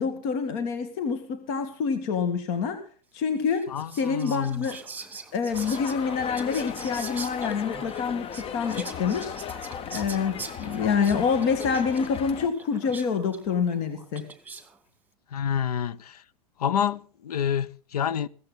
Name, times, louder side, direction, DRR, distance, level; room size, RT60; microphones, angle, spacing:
voice 1, 0.0-2.8 3.1-3.7 3.9-4.8 5.3-9.6 9.9-14.3, left 6 dB, 50° left, 2.3 m, -27 dB
Whispering, 3.5-14.8, right 4 dB, 10° right, 2.3 m, -43 dB
voice 2, 3.7-4.7 15.3-16.2 16.6-18.3, left 8 dB, 75° left, 0.8 m, -28 dB
sound 1, 5.5-12.5, left 8 dB, 30° left, 0.9 m, -36 dB
16.5 x 14.5 x 4.1 m
hypercardioid pair, 95°, 20 cm